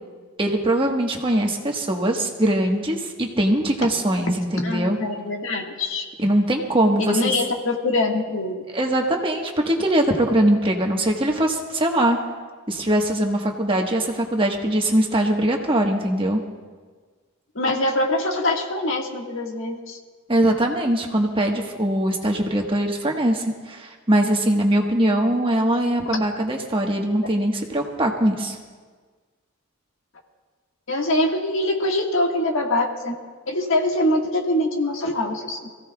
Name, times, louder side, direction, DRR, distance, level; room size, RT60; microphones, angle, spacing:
voice 1, 0.4-5.0 6.2-7.3 8.7-12.2 12.7-16.4 20.3-28.6, right 1 dB, 25° right, 1 dB, 1.3 m, -21 dB
voice 2, 4.6-6.0 7.0-8.6 17.5-20.0 26.0-26.2 30.9-33.1 33.5-35.7, left 1 dB, 75° left, 1 dB, 1.6 m, -23 dB
26.5 x 16.0 x 2.3 m, 1.5 s
head